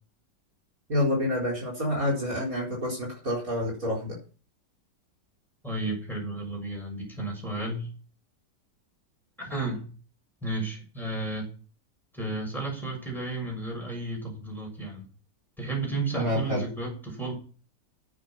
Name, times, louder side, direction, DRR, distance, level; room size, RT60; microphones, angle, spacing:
voice 1, 0.9-4.2 16.1-16.6, left 1 dB, 50° right, -1 dB, 4.9 m, -28 dB
voice 2, 5.6-7.9 9.4-9.9 10.4-11.5 12.1-15.0 15.6-17.4, right 2 dB, ahead, -1 dB, 6.6 m, -33 dB
10.5 x 9.2 x 6.0 m, 0.37 s
omnidirectional pair, 1.9 m